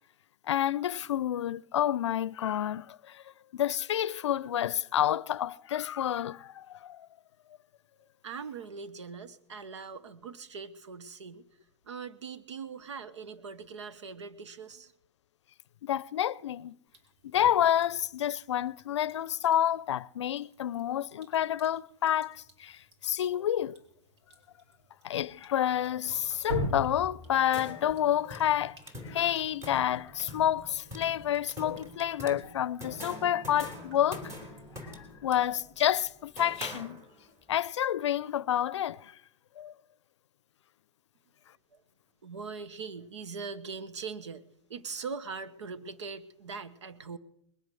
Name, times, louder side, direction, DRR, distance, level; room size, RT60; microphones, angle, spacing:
voice 1, 0.4-3.2 3.5-7.1 15.8-16.8 17.2-23.8 25.0-28.8 29.0-34.3 34.8-37.0 37.5-39.1 39.6-39.7, left 11 dB, 85° left, 0.5 m, -29 dB
voice 2, 8.2-11.5 11.8-14.9 41.7-41.8 42.2-44.4 44.7-47.2, right 5 dB, 85° right, 1.2 m, -41 dB
Drip, 16.9-35.2, equal, 70° right, 4.3 m, -45 dB
sound 1, 27.2-37.4, left 1 dB, 20° right, 3.1 m, -45 dB
20.5 x 8.1 x 7.0 m
hypercardioid pair, 140°, 15 cm